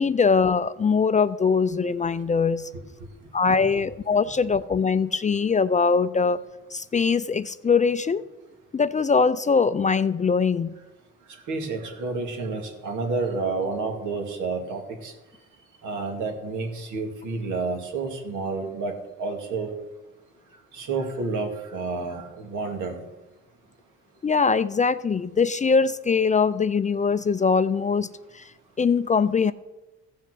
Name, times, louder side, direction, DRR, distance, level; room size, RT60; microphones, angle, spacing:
voice 1, 0.0-2.7 3.3-6.4 6.7-8.2 8.7-10.7 24.2-28.1 28.3-28.4 28.8-29.5, left 5 dB, 25° left, 14 dB, 0.4 m, -22 dB
voice 2, 11.5-15.1 15.8-18.9 19.2-19.7 20.7-23.0, right 3 dB, 80° right, 3 dB, 2.3 m, -30 dB
15.0 x 5.7 x 6.2 m, 1.1 s
cardioid pair, 90°, 30 cm